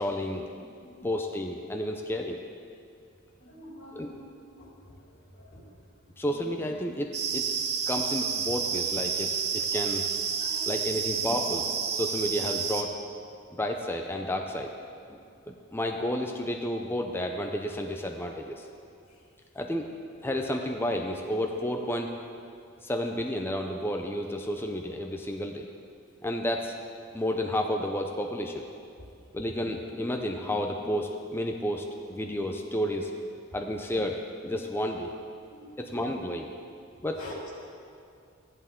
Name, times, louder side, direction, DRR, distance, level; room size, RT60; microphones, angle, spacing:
voice 1, 0.0-2.4 3.9-4.1 6.2-7.5 7.9-10.1 10.7-12.9 13.6-14.7 15.1-15.2 15.5-18.7 19.5-19.9 20.2-22.1 22.8-25.7 26.2-26.8 27.1-28.6 29.3-33.1 33.5-35.1 35.8-36.5 37.0-37.2, left 1 dB, 10° left, 3 dB, 0.5 m, -31 dB
voice 2, 3.4-4.2 4.6-4.7 5.3-5.6 9.7-9.8 10.4-10.7 13.3-13.4 29.0-29.1 34.6-34.7 35.5-35.8 37.2-37.5, left 1 dB, 80° left, -4 dB, 3.1 m, -45 dB
sound 1, 7.1-12.8, right 6 dB, 55° right, 0.9 m, -30 dB
14.0 x 11.0 x 3.7 m, 2.4 s
head